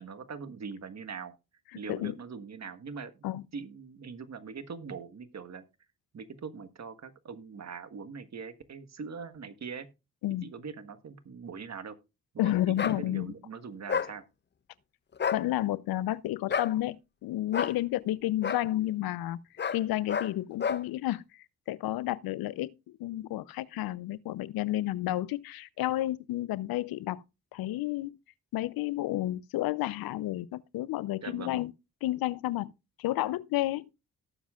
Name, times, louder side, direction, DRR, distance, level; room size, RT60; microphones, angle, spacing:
voice 1, 0.0-1.3 1.7-3.1 3.5-5.6 6.1-9.9 10.4-12.0 12.3-12.5 12.9-14.2 31.2-31.6, right 5 dB, 45° right, 1.5 m, -42 dB
voice 2, 12.4-13.3 15.3-19.4 19.7-22.7 23.0-27.2 27.5-28.1 28.5-31.7 32.0-32.7 33.0-33.9, left 15 dB, 70° left, 0.6 m, -31 dB
sound 1, 12.8-13.0 13.9-14.1 15.1-15.4 16.5-16.7 17.5-17.8 18.4-18.6 19.6-19.8 20.1-20.3 20.6-20.8, left 6 dB, 30° left, 0.6 m, -30 dB
18.0 x 7.2 x 2.4 m
supercardioid pair, 50°, 37 cm